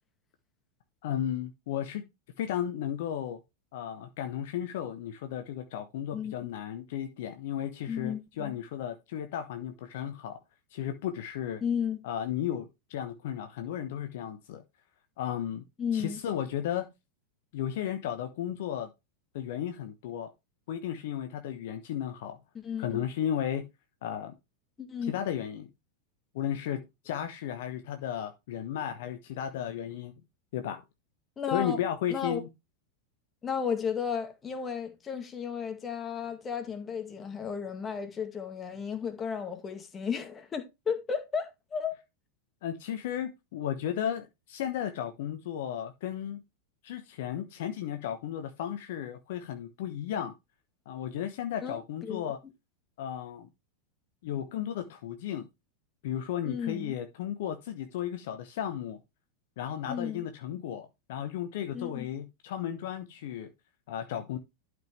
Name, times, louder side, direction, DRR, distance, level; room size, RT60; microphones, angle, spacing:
voice 1, 1.0-2.0 2.4-3.4 3.7-10.4 10.7-11.6 12.0-14.6 15.2-15.6 15.9-16.9 17.5-18.9 19.3-20.3 20.7-22.4 22.8-23.7 24.0-24.3 25.1-25.7 26.3-30.1 30.5-30.8 31.5-32.5 42.6-46.4 46.8-50.3 50.9-52.4 53.0-53.5 54.2-55.5 56.0-59.0 59.6-63.5 63.9-64.4, left 10 dB, 55° left, 1.1 m, -34 dB
voice 2, 7.9-8.5 11.6-12.0 15.8-16.2 22.5-23.0 24.8-25.1 31.4-31.8 32.1-32.4 33.4-42.0 51.6-52.2 56.5-56.9 59.9-60.2 61.7-62.1, left 7 dB, 20° left, 1.9 m, -33 dB
12.0 x 5.4 x 3.3 m
figure-of-eight pair, 90°, 0 cm